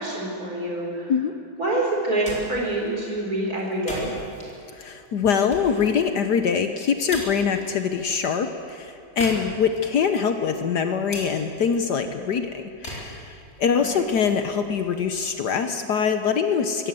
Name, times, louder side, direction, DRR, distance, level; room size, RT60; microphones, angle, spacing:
voice 1, 0.0-1.1 1.6-4.1 13.9-14.0, right 2 dB, 45° right, -2 dB, 5.1 m, -26 dB
sound 1, 2.0-15.9, left 1 dB, 35° left, 4.6 m, -41 dB
voice 2, 4.7-16.9, left 6 dB, 65° left, 7 dB, 1.4 m, -24 dB
21.0 x 16.5 x 7.7 m, 2.7 s
omnidirectional pair, 2.1 m